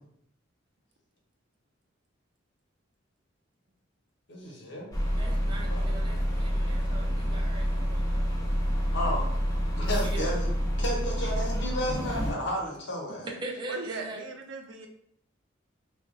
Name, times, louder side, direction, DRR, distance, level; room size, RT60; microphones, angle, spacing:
voice 1, 4.3-4.9 5.7-5.9 8.9-9.3 9.8-10.5 10.8-13.3, equal, 70° left, -2 dB, 1.0 m, -32 dB
sound 1, 4.9-12.3, equal, 20° left, 0.8 m, -28 dB
voice 2, 5.2-8.5 10.0-10.4 13.2-14.2, right 2 dB, 25° right, 0 dB, 0.5 m, -41 dB
voice 3, 13.7-14.9, right 2 dB, 75° right, 3 dB, 0.6 m, -38 dB
2.9 x 2.5 x 3.7 m, 0.69 s
head